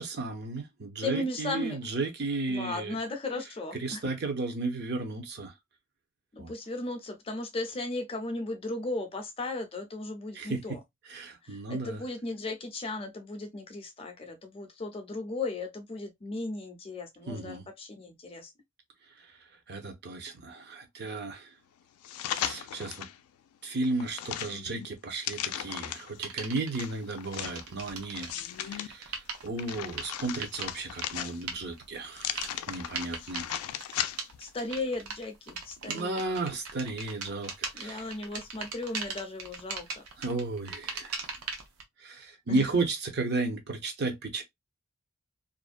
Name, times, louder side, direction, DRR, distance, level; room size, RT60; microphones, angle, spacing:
voice 1, 0.0-3.0 3.8-5.5 6.4-6.5 10.3-10.8 11.1-12.0 17.3-17.6 19.2-19.3 19.7-21.5 22.3-23.1 23.6-28.3 28.6-33.5 35.8-38.1 40.2-41.3 42.0-44.4, right 3 dB, 50° right, 0.7 m, -34 dB
voice 2, 1.0-1.8 2.5-4.0 6.3-10.8 11.4-18.5 34.4-36.2 37.8-40.0 42.5-42.7, left 2 dB, 25° left, 0.5 m, -36 dB
sound 1, 22.0-23.2 23.6-26.2 26.8-28.9 29.3-31.6 32.1-34.4 34.8-34.9, left 11 dB, 85° left, 0.3 m, -37 dB
sound 2, 26.2-26.8 27.3-41.8, right 4 dB, 90° right, 0.7 m, -40 dB
2.5 x 2.1 x 2.4 m
head